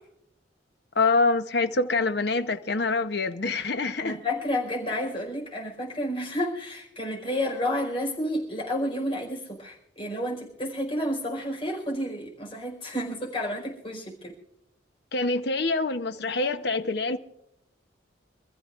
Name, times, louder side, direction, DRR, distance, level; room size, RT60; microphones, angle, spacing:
voice 1, 1.0-4.2 15.1-17.2, left 3 dB, 60° left, 1.0 m, -25 dB
voice 2, 4.0-14.3, left 1 dB, 30° left, 4.7 m, -30 dB
27.0 x 14.0 x 2.5 m
head